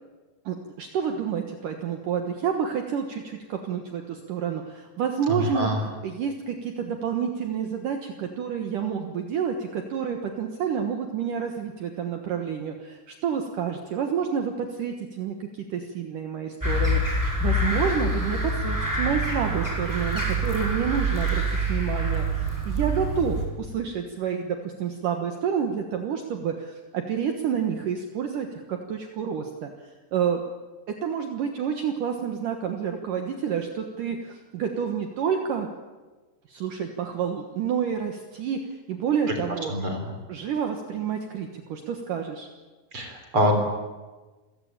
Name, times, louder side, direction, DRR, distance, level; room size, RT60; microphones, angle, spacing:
voice 1, 0.5-30.4 31.0-35.7 36.5-39.7 40.3-42.5, right 7 dB, 60° right, 4 dB, 2.6 m, -29 dB
voice 2, 5.3-5.8 39.7-40.0 42.9-43.6, equal, 35° right, 4 dB, 4.1 m, -24 dB
sound 1, 16.6-23.5, right 1 dB, 5° right, 4.6 m, -26 dB
29.0 x 16.0 x 8.9 m, 1.3 s
omnidirectional pair, 4.7 m